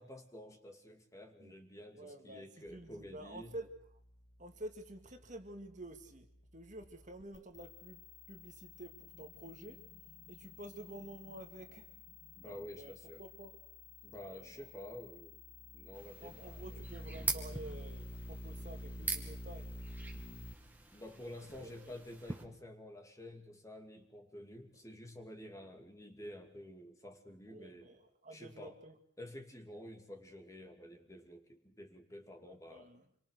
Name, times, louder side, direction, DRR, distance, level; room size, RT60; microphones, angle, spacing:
voice 1, 0.0-3.5 12.3-13.2 14.0-15.4 15.7-16.6 20.9-27.9 28.3-28.8 29.2-32.9, left 1 dB, 15° left, 4 dB, 2.7 m, -50 dB
voice 2, 1.9-3.7 4.4-9.8 10.3-12.0 12.5-13.6 14.3-14.7 16.2-19.7 21.2-22.0 25.5-25.6 27.5-29.0 32.4-33.0, right 1 dB, 35° right, 5 dB, 2.2 m, -50 dB
sound 1, 2.7-20.5, left 1 dB, 50° left, 2.9 m, -51 dB
sound 2, 15.9-22.4, right 3 dB, 10° right, 2.5 m, -44 dB
28.0 x 23.5 x 6.8 m, 0.63 s
head